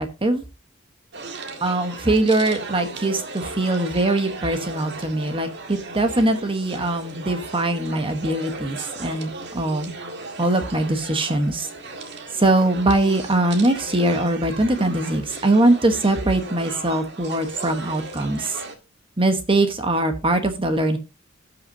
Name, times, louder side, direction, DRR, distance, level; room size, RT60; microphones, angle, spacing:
sound 1, 1.1-18.8, right 3 dB, 55° right, 1.9 m, -36 dB
voice 1, 1.6-9.9 10.4-11.7 12.4-18.6 19.2-21.0, right 2 dB, 25° right, 7 dB, 1.2 m, -22 dB
17.5 x 5.9 x 2.7 m, 0.28 s
head